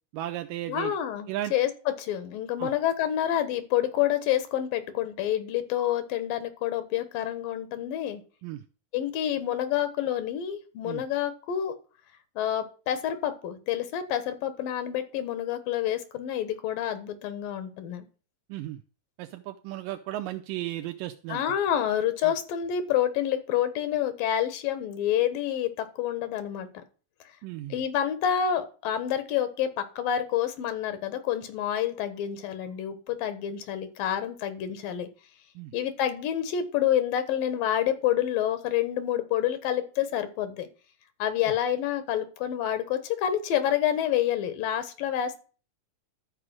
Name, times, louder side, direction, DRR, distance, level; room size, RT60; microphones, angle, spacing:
voice 1, 0.1-0.9 1.3-1.5 2.6-2.7 8.4-8.6 10.8-11.0 18.5-18.8 19.2-21.4 22.2-22.3 27.4-27.8 35.6-35.7, right 14 dB, 80° right, 6 dB, 2.3 m, -35 dB
voice 2, 0.7-8.2 8.9-11.7 12.4-18.1 21.3-26.7 27.7-35.1 35.7-40.7 41.2-45.4, left 10 dB, 85° left, 11 dB, 3.1 m, -28 dB
12.5 x 4.9 x 7.5 m, 0.37 s
omnidirectional pair, 3.9 m